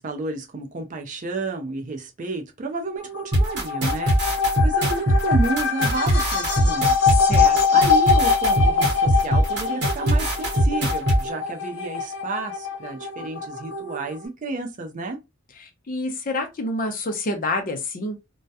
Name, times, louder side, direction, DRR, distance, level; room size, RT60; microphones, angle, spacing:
voice 1, 0.0-4.1 4.6-7.0 7.7-15.2, right 3 dB, 40° right, 0.4 m, -31 dB
sound 1, 3.0-14.3, left 5 dB, 85° left, 1.0 m, -23 dB
sound 2, 3.3-11.2, equal, 55° right, 1.0 m, -20 dB
voice 2, 7.0-7.6 15.6-18.2, left 2 dB, 45° left, 0.5 m, -28 dB
2.3 x 2.1 x 2.6 m
head